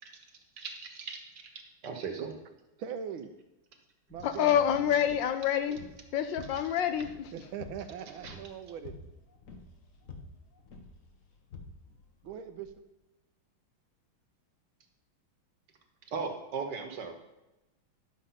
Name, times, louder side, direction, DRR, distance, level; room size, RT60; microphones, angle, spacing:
voice 1, 0.6-1.2 1.8-2.3 4.9-5.0 6.6-6.7 8.2-8.4 16.1-17.1, right 5 dB, 60° right, 1.7 m, -38 dB
voice 2, 2.8-3.3 4.1-4.6 7.3-8.9 12.2-12.7, right 8 dB, 80° right, 1.6 m, -40 dB
sound 1, 4.1-12.8, left 4 dB, 45° left, 1.3 m, -50 dB
voice 3, 4.2-5.8 6.1-7.3, left 9 dB, 75° left, 1.2 m, -27 dB
11.5 x 6.4 x 5.7 m
omnidirectional pair, 2.3 m